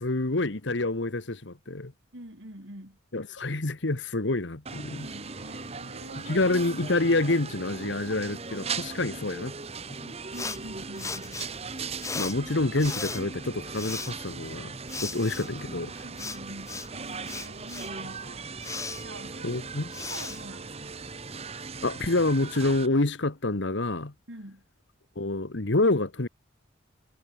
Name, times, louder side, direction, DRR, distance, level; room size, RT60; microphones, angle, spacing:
voice 1, 0.0-1.9 3.1-5.1 6.3-9.5 9.9-10.2 12.1-14.7 15.0-15.9 19.4-19.9 21.8-24.1 25.2-26.3, left 2 dB, 65° left, 1.4 m, -27 dB
voice 2, 2.1-3.0 4.9-6.4 9.1-9.2 10.3-11.4 16.0-18.5 19.0-19.5 20.1-21.0 24.3-24.6, right 1 dB, 70° right, 6.6 m, -45 dB
sound 1, 4.7-22.9, right 4 dB, 30° right, 1.3 m, -39 dB
sound 2, 10.3-21.3, left 4 dB, 15° left, 3.3 m, -39 dB
head